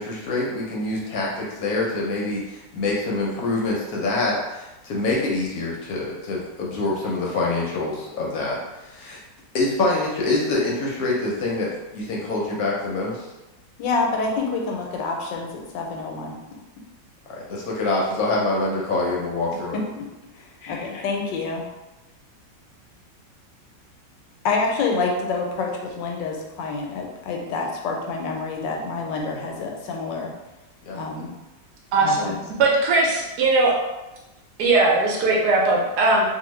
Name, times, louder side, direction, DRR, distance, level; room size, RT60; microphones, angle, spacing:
voice 1, 0.0-9.2 9.5-13.3 17.3-19.8 20.6-20.9 30.8-31.0, left 2 dB, 65° left, -3 dB, 1.0 m, -25 dB
voice 2, 13.8-16.3 19.7-19.8 20.3-21.6 24.4-30.3 30.9-31.3 32.0-32.4, left 3 dB, 85° left, 1 dB, 1.3 m, -27 dB
voice 3, 31.9-32.3 32.6-33.7 34.6-36.3, right 3 dB, 70° right, -2 dB, 1.1 m, -19 dB
2.7 x 2.5 x 3.0 m, 1.0 s
omnidirectional pair, 1.9 m